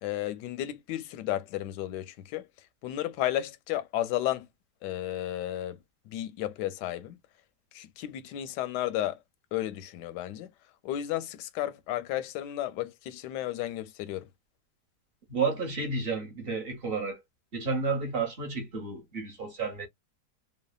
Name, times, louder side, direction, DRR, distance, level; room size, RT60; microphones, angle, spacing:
voice 1, 0.0-2.5 2.8-4.5 4.8-5.8 6.1-7.2 7.7-9.2 9.5-10.5 10.8-14.3, left 13 dB, 85° left, 1.2 m, -33 dB
voice 2, 15.3-17.2 17.5-19.9, right 4 dB, 40° right, 1.0 m, -31 dB
3.1 x 2.1 x 2.3 m
omnidirectional pair, 1.8 m